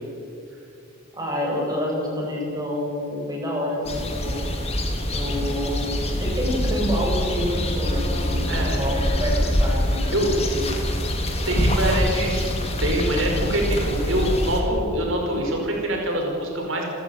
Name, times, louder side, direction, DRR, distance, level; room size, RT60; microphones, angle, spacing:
voice 1, 1.1-4.4 5.1-5.9 6.2-10.7, equal, 20° right, -3 dB, 7.8 m, -28 dB
sound 1, 3.8-14.6, left 1 dB, 30° left, 3.4 m, -25 dB
voice 2, 8.4-8.8 10.1-10.3 11.5-12.4 12.8-16.8, right 1 dB, 75° right, 1 dB, 5.3 m, -24 dB
29.0 x 14.0 x 9.6 m, 2.6 s
head